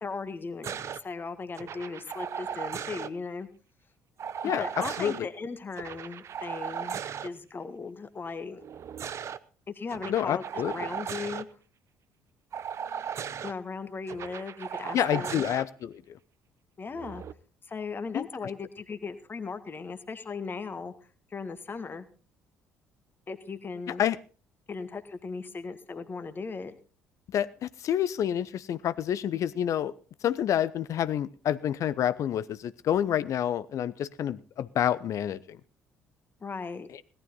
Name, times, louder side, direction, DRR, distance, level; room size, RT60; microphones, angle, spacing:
voice 1, 0.0-3.5 4.4-8.6 9.7-10.4 10.7-11.5 13.4-15.4 16.8-17.2 17.7-20.9 21.3-22.1 23.3-24.1 24.7-26.7 36.4-36.9, left 4 dB, 30° left, 10 dB, 1.7 m, -37 dB
sound 1, 0.6-1.0 1.5-3.1 4.2-5.2 5.7-7.3 8.6-9.4 9.9-11.4 12.5-13.5 14.1-15.6 16.9-17.3, right 8 dB, 45° right, 0.7 m, -37 dB
voice 2, 10.1-10.7 14.9-16.2 18.1-18.3 23.9-24.2 27.3-29.9 30.2-35.6 36.9-37.0, left 10 dB, 50° left, 16 dB, 0.7 m, -28 dB
17.5 x 12.5 x 4.0 m, 0.37 s
figure-of-eight pair, 50°, 7 cm